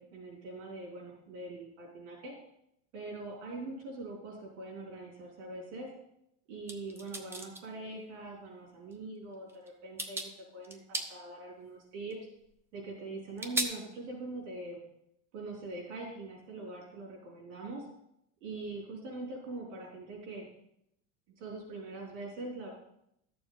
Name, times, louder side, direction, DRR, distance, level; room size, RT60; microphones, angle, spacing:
voice 1, 0.0-2.3 2.9-5.9 6.5-12.2 12.7-14.8 15.3-17.9 18.4-20.5 21.4-22.7, right 2 dB, 80° right, -3 dB, 4.3 m, -43 dB
sound 1, 6.7-7.6 8.9-9.0 9.5-9.7 10.0-10.3 10.6-11.1 12.1-12.2 13.4-13.6, right 2 dB, 5° right, 0.4 m, -35 dB
12.5 x 6.9 x 4.0 m, 0.76 s
supercardioid pair, 155°, 37 cm